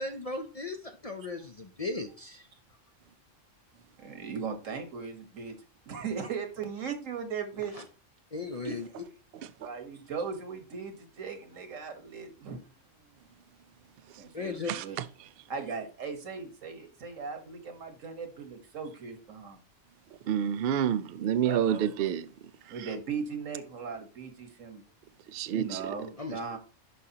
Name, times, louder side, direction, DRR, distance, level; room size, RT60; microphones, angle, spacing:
voice 1, 0.0-2.5 7.7-7.8 8.3-8.9 14.3-14.7 26.2-26.4, left 3 dB, 40° left, 0.6 m, -36 dB
voice 2, 4.0-5.5 5.9-7.7 8.6-8.8 9.6-12.6 14.2-15.0 15.5-19.6 21.4-21.9 22.7-24.8 25.5-26.6, right 5 dB, 85° right, 1.7 m, -38 dB
voice 3, 20.3-22.3 22.8-22.9 25.3-25.9, right 9 dB, 60° right, 0.7 m, -28 dB
11.0 x 5.2 x 2.9 m
omnidirectional pair, 1.3 m